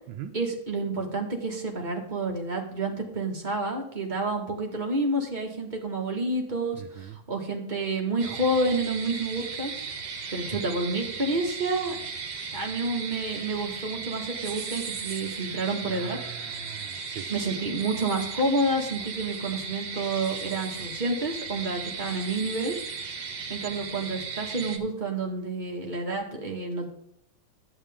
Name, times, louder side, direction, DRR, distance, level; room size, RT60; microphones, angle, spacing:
voice 1, 0.3-9.8 10.3-12.0 12.5-16.2 17.3-22.8 23.5-26.9, right 2 dB, 25° right, 0 dB, 1.8 m, -29 dB
voice 2, 6.7-7.2 15.5-15.6 15.9-17.3, right 10 dB, 90° right, 4 dB, 1.5 m, -41 dB
sound 1, 8.2-24.8, right 5 dB, 60° right, 1.7 m, -36 dB
11.0 x 8.7 x 3.6 m, 0.73 s
omnidirectional pair, 2.1 m